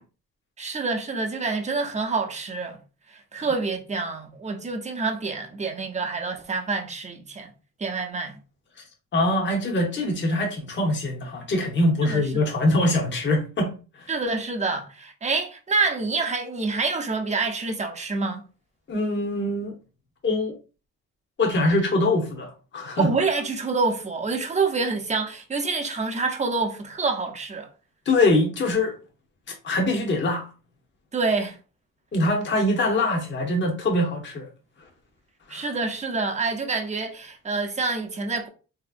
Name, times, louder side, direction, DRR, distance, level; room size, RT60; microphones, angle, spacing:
voice 1, 0.6-2.8 3.1-7.5 7.8-8.4 12.0-12.5 14.1-18.4 23.0-27.7 31.1-31.6 35.5-38.5, right 4 dB, 25° right, 0.7 m, -27 dB
voice 2, 9.1-14.1 18.9-19.7 20.2-20.5 21.4-23.1 28.1-28.9 29.6-30.5 32.1-34.5 35.5-35.7, left 2 dB, 40° left, 1.0 m, -23 dB
3.2 x 2.8 x 2.5 m
cardioid pair, 90°, 30 cm